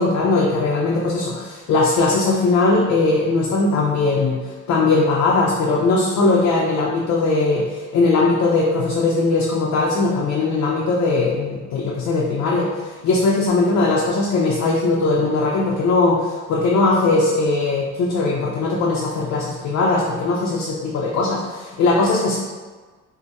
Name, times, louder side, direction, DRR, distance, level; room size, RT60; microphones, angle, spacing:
voice 1, 0.0-4.4 4.7-22.4, left 3 dB, 60° left, -3 dB, 0.6 m, -19 dB
4.5 x 2.1 x 2.6 m, 1.3 s
cardioid pair, 90°, 30 cm